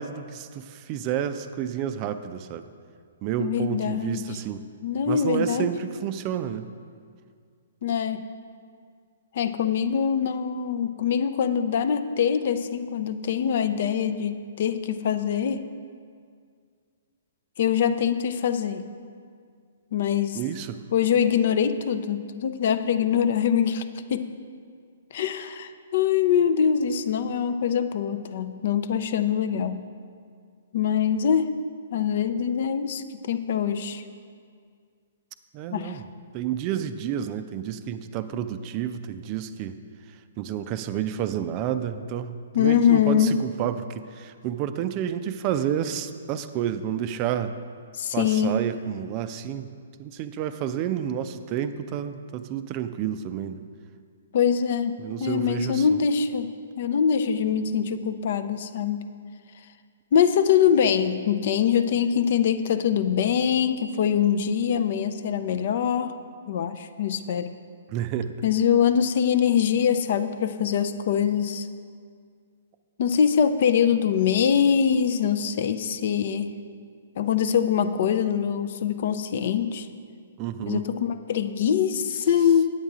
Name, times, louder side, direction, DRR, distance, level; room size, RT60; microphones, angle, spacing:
voice 1, 0.0-2.7 3.2-4.6 5.1-6.7 20.3-20.8 35.5-36.0 36.3-39.8 40.4-47.5 48.1-49.7 50.0-53.6 55.0-55.9 67.9-68.4 80.4-80.9, right 9 dB, 35° right, 11 dB, 0.4 m, -30 dB
voice 2, 3.4-4.2 4.8-5.7 7.8-8.2 9.3-15.6 17.6-18.8 19.9-20.4 20.9-23.8 24.1-24.3 25.1-29.9 30.7-31.5 31.9-34.0 35.7-36.0 42.5-43.3 48.0-48.5 54.3-56.5 56.8-59.0 60.1-66.1 66.5-67.5 68.4-71.7 73.0-76.5 77.2-79.9 80.7-82.7, left 8 dB, 50° left, 11 dB, 0.4 m, -23 dB
9.1 x 8.7 x 3.7 m, 2.1 s
figure-of-eight pair, 120°, 0 cm